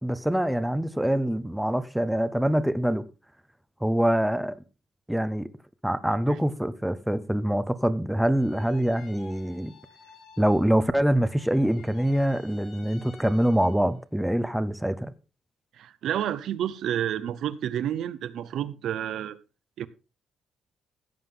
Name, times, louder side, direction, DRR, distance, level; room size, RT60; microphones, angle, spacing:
voice 1, 0.0-3.0 3.8-4.6 5.1-5.5 5.8-9.7 10.4-15.1, equal, ahead, 0.5 m, -25 dB
sound 1, 8.3-11.0 11.2-14.0, left 5 dB, 55° left, 2.0 m, -53 dB
voice 2, 15.8-19.4 19.8-19.9, right 10 dB, 65° right, 0.7 m, -30 dB
16.5 x 7.7 x 3.8 m
cardioid pair, 160°, 0 cm